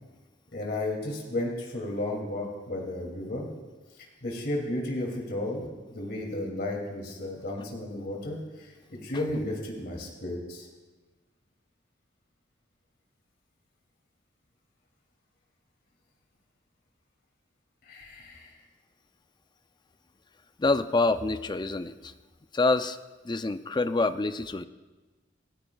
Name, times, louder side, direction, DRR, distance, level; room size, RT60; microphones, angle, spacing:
voice 1, 0.5-3.5 4.2-5.7 5.9-10.7 17.9-18.5, left 1 dB, 55° left, -1 dB, 2.7 m, -33 dB
voice 2, 20.6-22.1 22.5-23.0 23.2-24.7, left 3 dB, 25° left, 11 dB, 0.5 m, -26 dB
27.5 x 14.0 x 2.4 m, 1.2 s
head